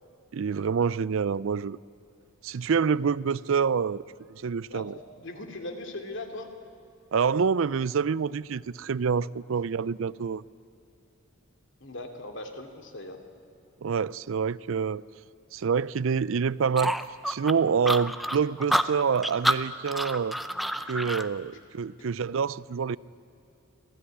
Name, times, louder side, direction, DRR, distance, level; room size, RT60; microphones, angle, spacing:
voice 1, 0.3-1.8 2.4-4.0 4.3-4.9 7.1-10.4 13.8-15.0 15.5-17.0 17.3-20.3 20.9-23.0, right 6 dB, 65° right, 0.4 m, -27 dB
voice 2, 5.2-6.5 11.8-13.2 22.0-22.1, left 2 dB, 60° left, 2.7 m, -39 dB
sound 1, 16.8-21.3, equal, ahead, 0.6 m, -28 dB
25.5 x 15.5 x 9.9 m
head